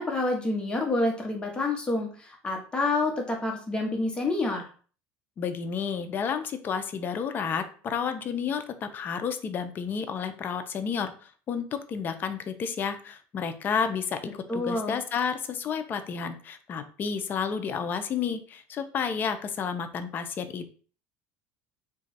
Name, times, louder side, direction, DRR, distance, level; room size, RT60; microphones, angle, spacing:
voice 1, 0.0-4.7 14.5-15.0, left 2 dB, 15° left, 1 dB, 0.9 m, -28 dB
voice 2, 5.4-20.8, left 6 dB, 35° left, 8 dB, 0.4 m, -31 dB
2.9 x 2.3 x 4.1 m, 0.41 s
cardioid pair, 135°, 6 cm